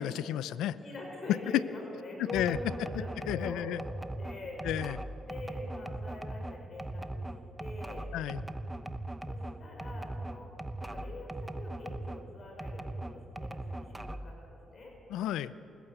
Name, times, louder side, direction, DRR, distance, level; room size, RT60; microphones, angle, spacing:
voice 1, 0.0-0.8 1.5-1.6 2.3-2.6 3.3-3.8 4.6-5.0 8.1-8.4 15.1-15.5, left 12 dB, 90° left, 16 dB, 0.6 m, -31 dB
voice 2, 0.8-4.6 5.2-7.3 7.6-8.1 9.3-10.5 10.8-15.0, left 2 dB, 45° left, 0 dB, 5.8 m, -44 dB
sound 1, 2.3-12.2 12.6-14.4, right 1 dB, 10° right, 1.0 m, -39 dB
27.0 x 15.0 x 8.0 m, 2.8 s
cardioid pair, 90°, 0 cm